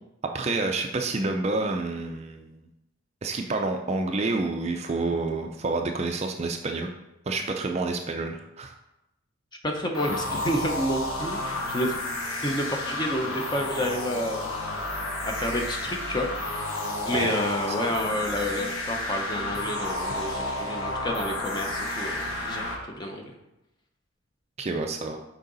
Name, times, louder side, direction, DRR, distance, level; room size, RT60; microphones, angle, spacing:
voice 1, 0.2-2.6 3.2-6.9 7.3-8.7 17.1-17.3 24.6-25.2, right 3 dB, 30° right, 4 dB, 0.4 m, -28 dB
voice 2, 9.6-12.0 12.4-14.5 15.2-16.3 17.0-22.7 23.0-23.3, equal, 20° left, 2 dB, 0.7 m, -29 dB
sound 1, 9.9-22.8, left 2 dB, 75° left, 1.1 m, -31 dB
6.5 x 4.7 x 3.9 m, 0.93 s
head